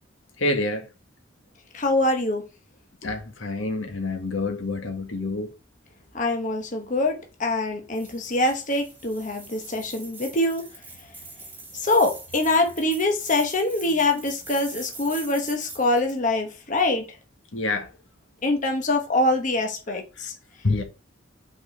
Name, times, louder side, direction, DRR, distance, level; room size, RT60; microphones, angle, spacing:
voice 1, 0.4-0.9 3.0-5.5 17.5-17.9 20.2-20.3 20.6-20.8, left 2 dB, 90° left, 1.7 m, -27 dB
voice 2, 1.7-2.4 6.1-10.6 11.7-17.0 18.4-20.3, left 2 dB, 40° left, 1.0 m, -24 dB
sound 1, 7.9-16.2, right 3 dB, 10° right, 2.6 m, -42 dB
5.5 x 4.7 x 4.8 m
head